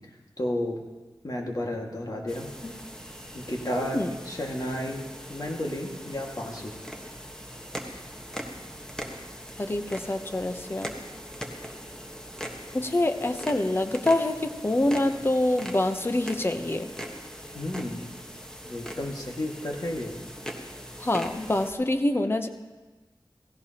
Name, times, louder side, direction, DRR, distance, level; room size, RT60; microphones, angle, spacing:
voice 1, 0.4-0.8 1.2-2.7 3.3-5.0 5.3-6.7 17.5-18.1 18.7-20.1, left 1 dB, 50° left, 0 dB, 1.9 m, -32 dB
sound 1, 2.3-21.7, equal, 10° left, 1.3 m, -41 dB
voice 2, 9.6-10.9 12.7-16.9 21.0-22.5, left 1 dB, 30° left, 8 dB, 0.8 m, -26 dB
16.5 x 16.0 x 2.9 m, 1.2 s
wide cardioid pair, 80°, 8 cm